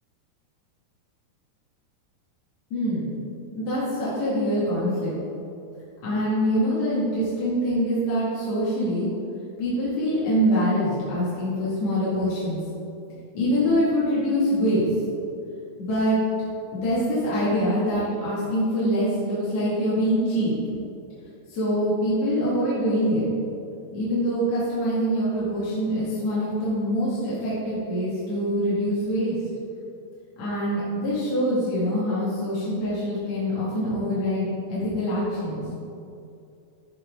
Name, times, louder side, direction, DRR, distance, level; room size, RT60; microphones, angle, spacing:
voice 1, 2.7-3.1 3.5-5.1 6.0-9.1 9.6-12.6 13.3-14.8 15.8-16.2 16.7-20.5 21.5-23.2 23.9-29.3 30.4-35.6, equal, 45° left, -10 dB, 3.3 m, -24 dB
14.0 x 6.4 x 3.9 m, 2.6 s
omnidirectional pair, 4.7 m